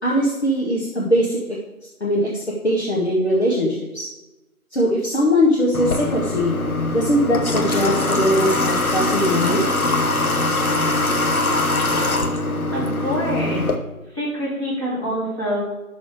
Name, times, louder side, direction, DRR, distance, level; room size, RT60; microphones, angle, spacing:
voice 1, 0.0-1.4 2.0-4.1 4.7-6.6 6.9-9.7, equal, 50° left, -5 dB, 1.4 m, -20 dB
Water / Water tap faucet, 5.7-13.8, left 2 dB, 75° left, 1.0 m, -22 dB
voice 2, 12.7-13.7 14.1-15.7, equal, 20° left, -10 dB, 3.4 m, -25 dB
11.5 x 6.3 x 3.4 m, 1.0 s
figure-of-eight pair, 165°, 43 cm